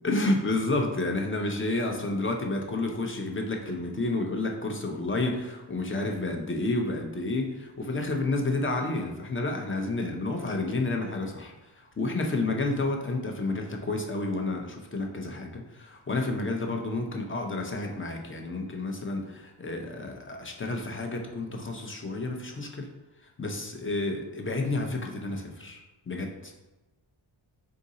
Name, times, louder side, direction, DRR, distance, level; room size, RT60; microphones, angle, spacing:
voice 1, 0.0-22.9 23.4-25.8 26.1-26.5, left 2 dB, 25° left, 2 dB, 0.6 m, -30 dB
3.7 x 2.6 x 4.0 m, 1.1 s
cardioid pair, 75°, 49 cm